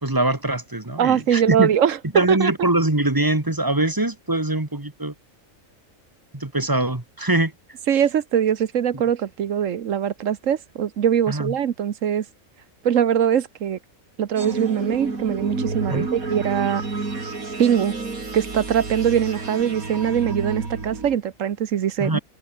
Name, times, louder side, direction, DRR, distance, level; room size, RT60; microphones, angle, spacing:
voice 1, 0.0-1.7 2.1-5.1 6.3-7.5 11.3-11.5 15.9-16.1 22.0-22.2, right 2 dB, 15° right, 2.1 m, -23 dB
voice 2, 1.0-2.5 7.9-12.2 12.8-13.8 14.2-16.8 17.6-17.9 18.3-22.2, right 9 dB, 65° right, 1.3 m, -22 dB
sound 1, 14.4-21.2, right 3 dB, 85° right, 4.0 m, -30 dB
omnidirectional pair, 1.4 m